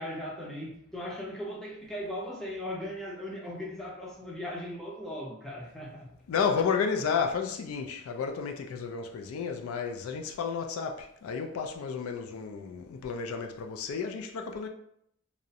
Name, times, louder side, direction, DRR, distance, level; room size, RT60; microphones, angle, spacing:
voice 1, 0.0-6.1, left 1 dB, ahead, 0.5 m, -38 dB
voice 2, 6.3-14.7, left 6 dB, 85° left, 0.3 m, -32 dB
2.4 x 2.0 x 2.7 m
head